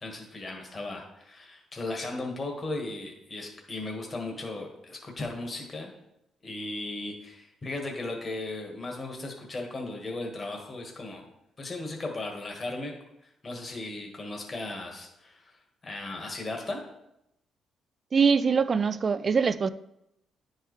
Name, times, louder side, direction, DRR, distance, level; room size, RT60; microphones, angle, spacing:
voice 1, 0.0-5.9 6.4-11.2 11.6-12.9 13.4-15.4 15.8-16.8, left 2 dB, 35° left, 1 dB, 1.5 m, -36 dB
voice 2, 18.1-19.7, right 5 dB, 40° right, 15 dB, 0.3 m, -23 dB
9.7 x 4.6 x 3.2 m, 0.82 s
cardioid pair, 90°, 0 cm